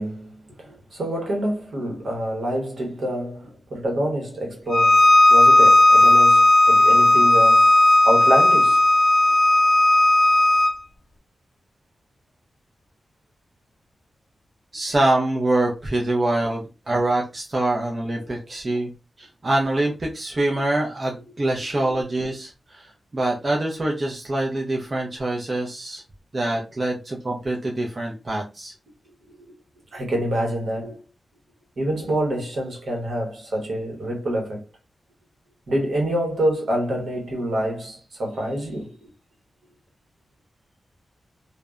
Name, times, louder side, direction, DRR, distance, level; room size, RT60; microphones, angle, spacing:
voice 1, 0.0-8.8 29.3-29.5 29.9-31.0 31.8-34.6 35.7-39.1, right 1 dB, 65° right, 1.0 m, -27 dB
Bowed string instrument, 4.7-10.8, left 1 dB, 65° left, 0.4 m, -15 dB
voice 2, 14.7-18.9 19.2-26.0 26.3-28.7, right 2 dB, 35° right, 0.5 m, -25 dB
2.7 x 2.1 x 2.3 m
wide cardioid pair, 135°, 0 cm